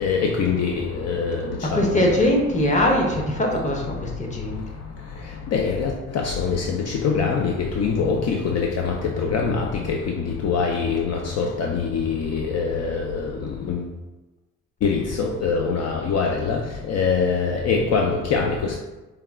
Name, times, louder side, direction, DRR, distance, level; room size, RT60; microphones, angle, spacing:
voice 1, 0.0-0.7 1.0-1.4 1.7-2.0 5.5-6.8 7.0-10.0 10.4-13.3 13.7-13.8 14.8-16.6 16.9-18.8, left 5 dB, 55° left, 1 dB, 0.5 m, -23 dB
voice 2, 1.7-4.6, left 1 dB, 25° left, 0 dB, 0.9 m, -21 dB
4.6 x 2.3 x 3.6 m, 1.1 s
cardioid pair, 90°, 30 cm